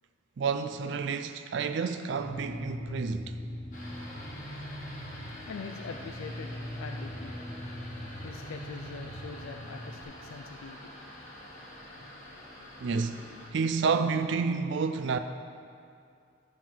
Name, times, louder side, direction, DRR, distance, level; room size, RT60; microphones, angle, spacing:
voice 1, 0.4-3.4 12.8-13.2 13.5-15.2, right 5 dB, 55° right, 0.3 m, -29 dB
sound 1, 2.1-10.0, equal, ahead, 1.2 m, -41 dB
sound 2, 3.7-13.5, left 1 dB, 40° left, 1.4 m, -47 dB
voice 2, 5.5-7.3 8.2-10.9, left 5 dB, 80° left, 0.4 m, -43 dB
12.0 x 4.2 x 5.9 m
head